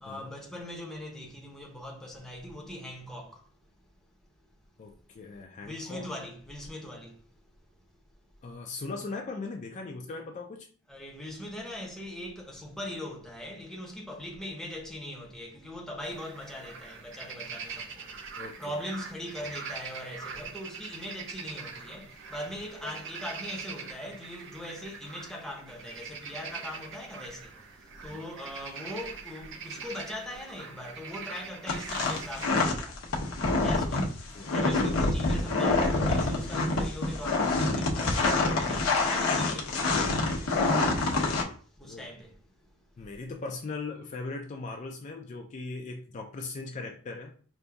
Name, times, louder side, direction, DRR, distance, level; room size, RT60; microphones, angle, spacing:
voice 1, 0.0-3.4 3.8-3.9 5.6-7.2 10.9-18.1 18.6-33.3 33.5-40.6 41.8-42.4, left 1 dB, ahead, 0.7 m, -41 dB
voice 2, 4.8-6.1 8.4-10.7 18.4-18.8 22.8-23.0 28.1-28.3 29.8-29.9 34.3-34.6 41.8-42.1 43.0-47.3, left 3 dB, 35° left, 0.3 m, -39 dB
sound 1, 16.0-32.5, right 5 dB, 60° right, 0.6 m, -43 dB
sound 2, 31.7-41.4, left 3 dB, 90° left, 0.7 m, -26 dB
5.1 x 2.6 x 2.3 m
head